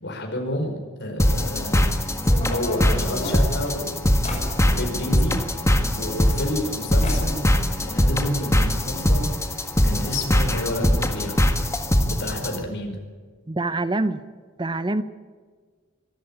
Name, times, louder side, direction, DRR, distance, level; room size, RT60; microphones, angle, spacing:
voice 1, 0.0-1.9 2.5-4.1 4.6-5.4 5.9-7.5 7.8-9.3 9.8-11.4 12.0-13.0, left 1 dB, 60° left, 3 dB, 5.0 m, -29 dB
sound 1, 1.2-12.6, equal, 15° left, 1.7 m, -22 dB
sound 2, 2.2-5.1 6.0-6.8 7.0-7.5 7.8-8.6 8.8-8.9 9.1-9.2 9.9-10.0 10.3-10.5, equal, 30° left, 5.8 m, -33 dB
voice 2, 13.5-14.2 14.6-15.0, right 2 dB, 25° right, 12 dB, 0.7 m, -25 dB
25.0 x 13.0 x 8.9 m, 1.5 s
head